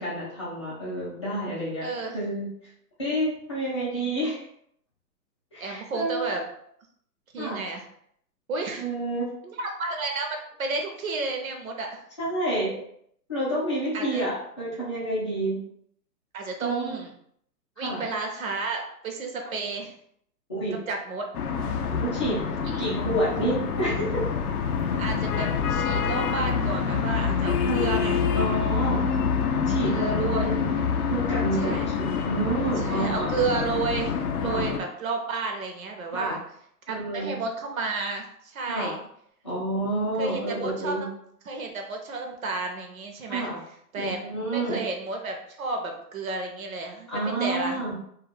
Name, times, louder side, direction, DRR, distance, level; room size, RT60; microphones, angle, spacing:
voice 1, 0.0-1.9 2.1-2.5 3.0-4.5 5.5-6.4 7.4-7.6 8.8-9.3 12.2-12.7 13.3-15.6 16.6-17.0 17.8-18.0 19.4-19.5 20.5-20.8 21.9-22.4 22.8-24.2 27.6-27.8 28.3-29.1 29.7-30.6 31.1-33.5 34.4-34.6 36.1-36.3 36.9-37.4 38.7-38.9 39.4-41.1 43.3-43.6 44.0-44.8 47.1-48.0, right 1 dB, 20° left, -9 dB, 0.5 m, -29 dB
voice 2, 1.8-2.2 3.9-4.1 5.6-6.4 7.3-7.8 8.5-8.8 9.4-12.0 13.9-14.2 16.3-17.1 17.8-19.9 20.7-21.3 22.6-22.8 25.0-28.3 29.8-30.5 31.5-31.9 32.8-36.4 36.9-39.0 40.2-41.1 41.5-43.5 43.9-44.2 44.5-47.8, right 3 dB, 60° right, 2 dB, 0.6 m, -32 dB
sound 1, 21.3-34.8, left 6 dB, 65° left, 0.5 m, -26 dB
2.3 x 2.1 x 3.3 m, 0.69 s
hypercardioid pair, 160°, 49 cm